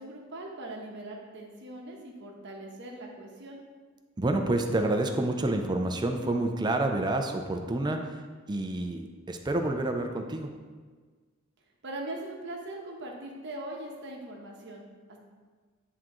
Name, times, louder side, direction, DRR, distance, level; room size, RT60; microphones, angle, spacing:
voice 1, 0.0-3.6 11.8-14.8, right 1 dB, 55° right, 0 dB, 1.0 m, -40 dB
voice 2, 4.2-8.2 8.5-10.5, right 2 dB, 20° right, 4 dB, 0.5 m, -28 dB
9.9 x 3.7 x 3.0 m, 1.5 s
head